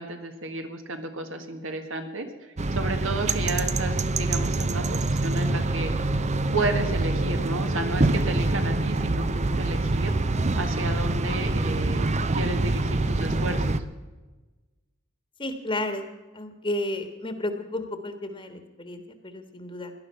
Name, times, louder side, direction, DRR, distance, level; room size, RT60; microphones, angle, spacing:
voice 1, 0.0-2.3 2.7-5.9 6.5-10.1 10.5-13.7, right 2 dB, 70° right, 6 dB, 1.8 m, -32 dB
sound 1, 2.6-13.8, right 2 dB, 35° right, 0.7 m, -25 dB
voice 2, 15.4-16.1 16.3-19.9, left 1 dB, 25° left, 7 dB, 1.5 m, -32 dB
18.0 x 11.5 x 5.8 m, 1.2 s
head